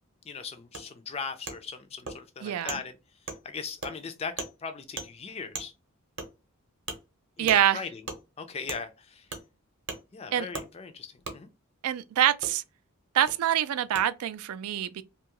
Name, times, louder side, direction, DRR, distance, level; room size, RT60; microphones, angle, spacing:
voice 1, 0.3-3.0 3.2-5.7 7.4-8.0 8.4-9.3 10.1-11.5, left 5 dB, 25° left, 0.3 m, -39 dB
Wood, 0.7-0.8 1.5-1.6 2.1-2.2 2.7-2.8 3.3-3.4 3.8-3.9 4.4-4.5 5.0-5.1 5.5-5.7 6.2-6.3 6.9-7.0 7.5-7.6 8.1-8.2 8.7-8.8 9.3-9.4 9.9-10.0 10.5-10.7 11.2-11.4 12.4-12.5 13.3-13.4 13.9-14.0, right 3 dB, 50° right, 0.7 m, -36 dB
voice 2, 2.4-2.8 7.4-7.8 10.3-10.5 11.8-12.6 13.1-15.0, right 10 dB, 80° right, 0.3 m, -25 dB
2.7 x 2.3 x 2.9 m
head